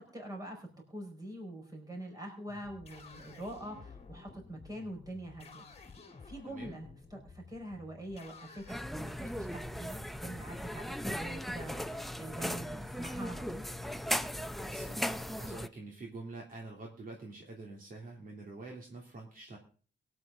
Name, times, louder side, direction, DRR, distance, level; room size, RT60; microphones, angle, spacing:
voice 1, 0.0-5.6 6.2-13.7, right 1 dB, 20° right, 2 dB, 4.9 m, -44 dB
sound 1, 2.5-8.8, left 4 dB, 35° left, 2.0 m, -53 dB
voice 2, 6.5-6.8 14.5-19.6, right 3 dB, 50° right, 0 dB, 2.9 m, -46 dB
sound 2, 8.7-15.7, equal, ahead, 0.5 m, -37 dB
22.5 x 8.4 x 3.8 m, 0.41 s
wide cardioid pair, 170°, 19 cm